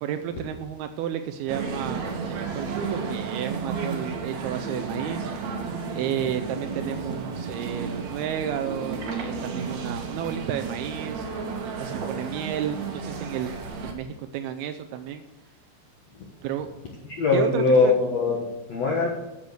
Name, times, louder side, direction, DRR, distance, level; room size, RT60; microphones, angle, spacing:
voice 1, 0.0-5.3 5.9-11.3 11.6-13.5 13.8-15.2 16.4-16.7 17.3-17.9, right 10 dB, 90° right, 8 dB, 2.2 m, -32 dB
sound 1, 1.5-13.9, right 5 dB, 65° right, 1.8 m, -32 dB
voice 2, 17.1-19.1, left 4 dB, 75° left, 0 dB, 1.5 m, -21 dB
10.5 x 7.0 x 7.9 m, 0.96 s
omnidirectional pair, 5.0 m